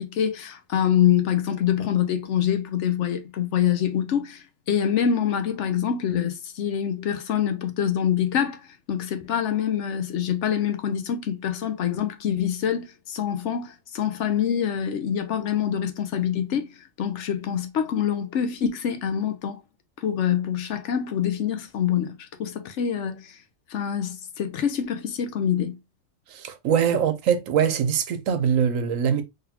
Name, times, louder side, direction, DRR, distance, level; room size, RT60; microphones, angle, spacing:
voice 1, 0.0-19.6 20.0-23.4 23.7-25.8 26.9-27.0, left 9 dB, 65° left, 0.9 m, -25 dB
voice 2, 26.3-29.2, right 8 dB, 75° right, 1.1 m, -23 dB
3.9 x 3.4 x 2.8 m
omnidirectional pair, 1.4 m